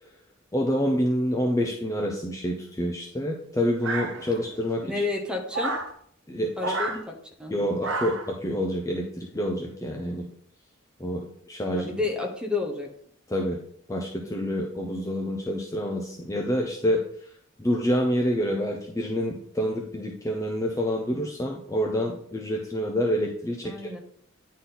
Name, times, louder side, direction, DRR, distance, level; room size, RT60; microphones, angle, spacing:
voice 1, 0.5-4.9 6.3-6.7 7.5-10.3 11.0-11.9 13.3-13.6 13.9-17.3 17.6-23.9, equal, 15° left, 1 dB, 0.6 m, -27 dB
sound 1, 3.8-4.6 5.5-5.9 6.6-7.0 7.8-8.3, right 2 dB, 60° right, 0.9 m, -30 dB
voice 2, 4.8-5.7 6.6-7.1 7.4-7.5 11.7-12.9 23.6-24.0, left 3 dB, 5° right, 2 dB, 1.0 m, -30 dB
9.7 x 4.2 x 3.9 m, 0.63 s
head